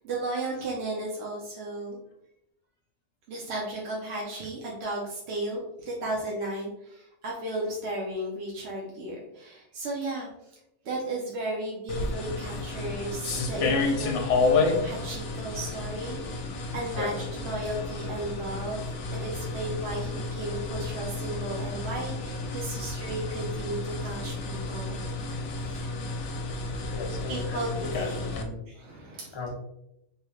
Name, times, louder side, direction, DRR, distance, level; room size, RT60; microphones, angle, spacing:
voice 1, 0.0-2.0 3.3-5.6 5.8-10.6 10.8-17.1 17.4-18.8 19.1-25.0 25.6-25.9 27.3-28.3 28.7-29.4, right 1 dB, 65° right, -3 dB, 0.9 m, -34 dB
sound 1, 11.9-28.4, left 3 dB, 75° left, 0.9 m, -31 dB
voice 2, 26.9-28.0 28.3-28.6 29.3-29.5, left 4 dB, 40° left, 1 dB, 0.3 m, -36 dB
3.2 x 3.0 x 2.3 m, 0.82 s
omnidirectional pair, 1.2 m